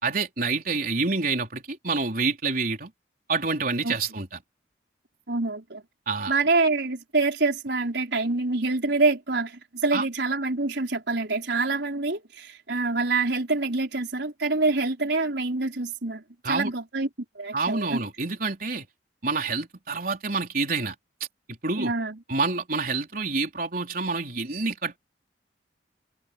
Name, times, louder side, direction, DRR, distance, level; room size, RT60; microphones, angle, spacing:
voice 1, 0.0-2.9 3.3-4.4 6.1-6.3 9.9-10.0 16.4-16.7 17.5-18.8 19.2-20.9 21.6-21.9 22.3-25.0, right 3 dB, 50° right, 4.3 m, -27 dB
voice 2, 5.3-5.8 6.3-17.1 17.3-18.0 21.8-22.2, right 3 dB, 70° right, 4.7 m, -26 dB
head